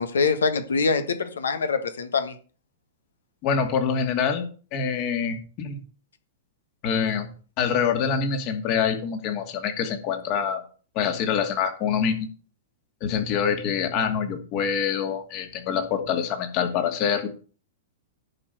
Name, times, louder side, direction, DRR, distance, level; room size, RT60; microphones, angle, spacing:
voice 1, 0.0-2.4, left 4 dB, 75° left, 10 dB, 1.5 m, -24 dB
voice 2, 3.4-4.4 4.7-5.8 6.8-7.3 7.6-10.6 10.9-12.3 13.0-17.3, left 7 dB, 45° left, 6 dB, 2.5 m, -25 dB
10.5 x 5.3 x 7.7 m, 0.39 s
figure-of-eight pair, 105°, 0 cm